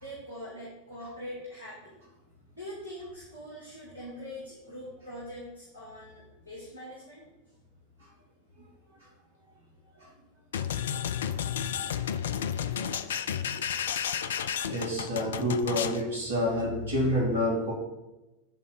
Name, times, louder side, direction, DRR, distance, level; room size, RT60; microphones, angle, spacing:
voice 1, 0.0-2.0 2.5-7.3, equal, 85° right, -6 dB, 1.5 m, -43 dB
sound 1, 10.5-16.0, left 8 dB, 65° left, 0.3 m, -32 dB
voice 2, 14.7-17.7, left 1 dB, 65° right, -3 dB, 2.3 m, -28 dB
8.0 x 3.7 x 4.6 m, 1.0 s
figure-of-eight pair, 85°, 0 cm